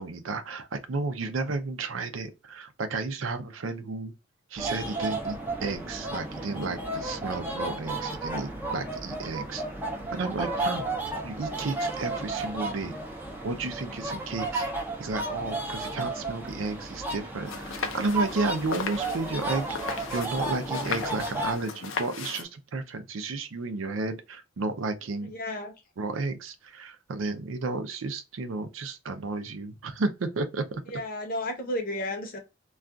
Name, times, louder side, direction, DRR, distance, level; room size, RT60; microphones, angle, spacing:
voice 1, 0.0-4.1 4.5-9.6 10.1-10.9 11.2-12.9 13.4-25.3 26.0-30.8, right 3 dB, 85° right, 0.5 m, -32 dB
sound 1, 4.6-21.5, right 2 dB, 10° right, 0.5 m, -33 dB
sound 2, 17.4-22.4, left 5 dB, 80° left, 0.6 m, -36 dB
voice 2, 25.3-25.7 30.9-32.4, left 1 dB, 50° left, 0.8 m, -32 dB
2.4 x 2.3 x 3.7 m
head